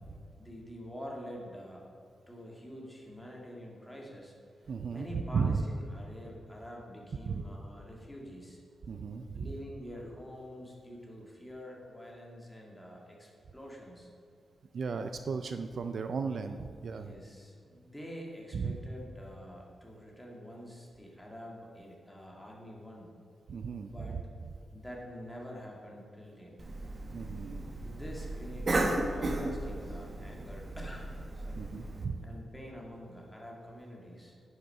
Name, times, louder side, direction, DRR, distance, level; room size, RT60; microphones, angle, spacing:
voice 1, 0.4-1.9 2.3-4.4 4.6-8.6 9.3-14.1 16.9-23.1 23.8-24.2 24.7-26.7 27.8-31.1 31.3-31.6 32.2-34.4, equal, 5° left, -2 dB, 1.9 m, -46 dB
voice 2, 4.7-5.6 7.3-7.4 8.8-9.5 14.7-17.1 18.5-18.8 23.5-24.2 27.1-27.7 31.6-32.3, right 5 dB, 55° right, 8 dB, 0.4 m, -35 dB
Cough, 26.6-32.0, right 2 dB, 35° right, 1.0 m, -35 dB
10.0 x 6.7 x 5.5 m, 2.4 s
wide cardioid pair, 150°, 0 cm